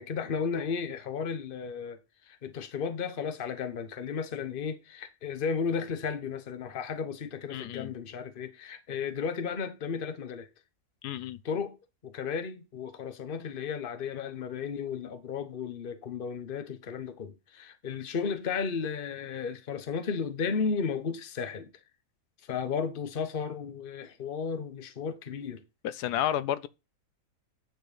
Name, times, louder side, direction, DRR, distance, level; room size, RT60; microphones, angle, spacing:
voice 1, 0.0-10.5 11.4-11.8 12.0-21.7 22.4-25.6, left 6 dB, 40° left, 1.0 m, -34 dB
voice 2, 7.5-7.9 11.0-11.4 25.8-26.7, left 11 dB, 85° left, 1.2 m, -31 dB
9.4 x 4.5 x 5.0 m
omnidirectional pair, 1.7 m